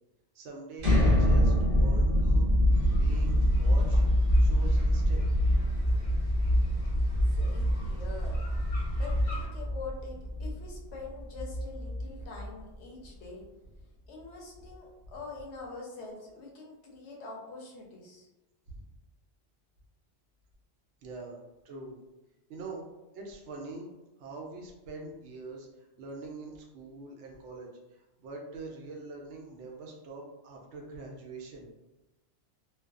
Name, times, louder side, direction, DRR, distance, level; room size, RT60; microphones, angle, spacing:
voice 1, 0.3-2.5 2.9-4.0 4.4-5.3 18.7-18.8 21.0-21.4 21.6-22.0 22.5-22.8 23.1-23.9 24.2-25.7 26.0-31.7, right 3 dB, 80° right, 0 dB, 0.9 m, -44 dB
sound 1, 0.8-12.6, equal, 40° right, 0.7 m, -25 dB
sound 2, 2.7-9.5, equal, 35° left, 0.8 m, -35 dB
voice 2, 6.4-6.8 7.3-8.4 8.9-13.5 14.1-18.3, left 3 dB, 80° left, -1 dB, 0.9 m, -45 dB
2.4 x 2.3 x 2.3 m, 1.0 s
omnidirectional pair, 1.2 m